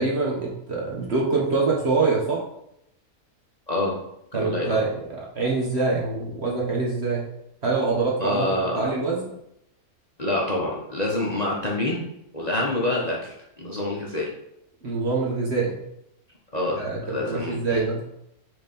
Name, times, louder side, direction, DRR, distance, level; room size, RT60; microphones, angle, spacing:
voice 1, 0.0-2.4 4.3-7.3 7.6-9.4 14.8-15.8 16.8-18.0, right 3 dB, 45° right, -3 dB, 1.5 m, -25 dB
voice 2, 4.3-4.8 8.2-8.9 10.2-12.0 12.3-14.3 16.5-17.8, left 1 dB, 30° left, -4 dB, 1.0 m, -27 dB
5.0 x 4.1 x 5.3 m, 0.79 s
omnidirectional pair, 1.6 m